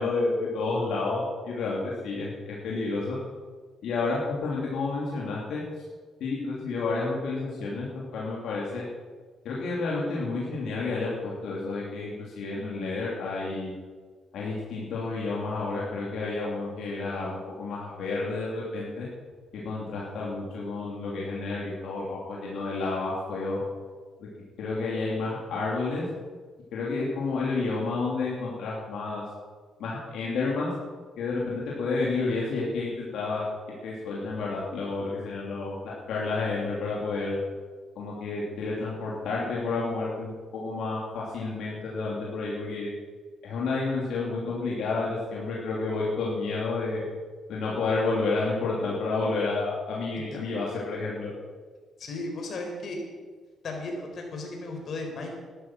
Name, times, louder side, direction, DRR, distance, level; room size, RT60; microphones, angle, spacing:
voice 1, 0.0-3.2 3.8-5.6 6.2-8.8 9.4-13.7 14.3-19.1 19.5-23.6 24.2-24.3 24.6-26.0 26.7-29.2 29.8-30.7 31.2-33.4 33.8-37.4 37.9-42.9 43.4-47.1 47.5-51.3, left 3 dB, 75° left, -5 dB, 3.0 m, -30 dB
voice 2, 52.0-53.0 53.6-55.3, left 2 dB, 55° left, 1 dB, 4.4 m, -35 dB
12.5 x 11.5 x 6.2 m, 1.5 s
cardioid pair, 90°, 0 cm